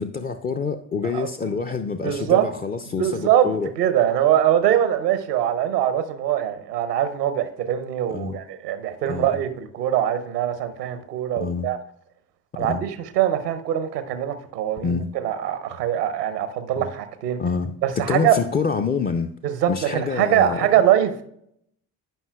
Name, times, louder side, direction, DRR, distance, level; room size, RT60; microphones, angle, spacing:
voice 1, 0.0-3.7 8.1-8.4 9.1-9.3 11.4-11.7 12.6-12.8 14.8-15.1 16.8-16.9 17.4-19.3 19.7-20.7, left 5 dB, 20° left, 0.5 m, -27 dB
voice 2, 1.1-1.5 2.0-2.5 3.0-11.8 12.6-17.4 17.8-18.4 19.4-21.2, right 10 dB, 85° right, 0.8 m, -22 dB
14.5 x 5.5 x 2.3 m
figure-of-eight pair, 45°, 47 cm